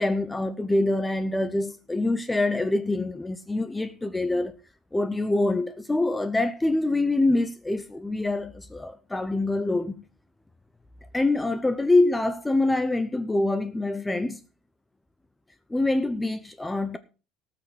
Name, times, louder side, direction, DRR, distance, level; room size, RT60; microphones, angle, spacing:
voice 1, 0.0-4.5 4.9-10.0 11.1-14.4 15.7-17.0, left 2 dB, 10° left, 0.6 m, -25 dB
18.5 x 6.5 x 5.0 m
cardioid pair, 165°, 0 cm